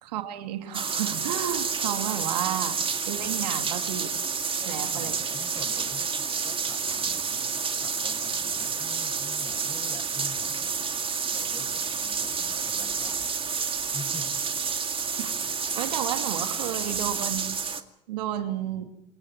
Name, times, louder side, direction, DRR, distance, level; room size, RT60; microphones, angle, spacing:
voice 1, 0.0-2.8 3.1-4.1 4.7-5.2 15.2-15.3 15.7-17.6 18.1-18.9, right 11 dB, 80° right, 6 dB, 2.6 m, -32 dB
sound 1, 0.7-17.8, right 5 dB, 25° right, 2.2 m, -29 dB
voice 2, 4.6-10.8 11.3-13.5 13.9-14.5, left 2 dB, 20° left, 9 dB, 7.0 m, -45 dB
27.5 x 22.0 x 5.9 m, 0.78 s
hypercardioid pair, 75°, 21 cm